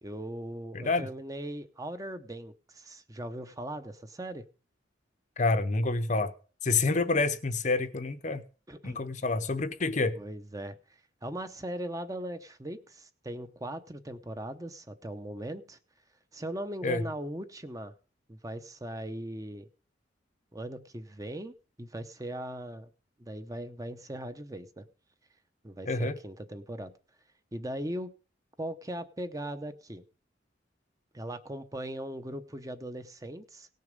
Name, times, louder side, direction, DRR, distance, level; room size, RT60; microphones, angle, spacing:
voice 1, 0.0-4.4 8.7-9.0 10.1-10.8 11.2-15.8 16.3-17.9 18.3-19.7 20.5-22.9 23.2-24.8 25.6-26.9 27.5-28.1 28.6-30.0 31.1-33.7, right 1 dB, 20° right, 0.8 m, -39 dB
voice 2, 0.7-1.1 5.4-6.3 6.6-8.4 8.8-10.1 16.8-17.0 25.9-26.2, left 3 dB, 40° left, 0.7 m, -28 dB
18.0 x 6.6 x 5.2 m
head